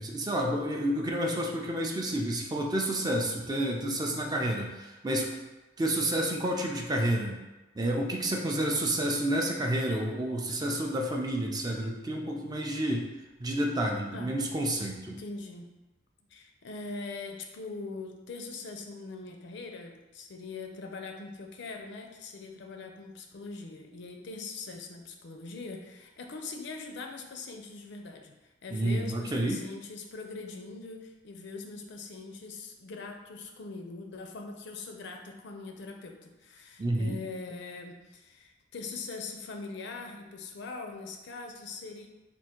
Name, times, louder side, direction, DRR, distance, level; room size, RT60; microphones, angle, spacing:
voice 1, 0.0-5.4 5.8-7.4 7.8-13.1 13.4-15.1 28.7-29.6 36.8-37.2, right 1 dB, 20° right, 0 dB, 0.4 m, -29 dB
voice 2, 15.1-15.7 16.3-42.1, left 3 dB, 60° left, 3 dB, 0.5 m, -42 dB
3.5 x 2.5 x 4.4 m, 1.1 s
head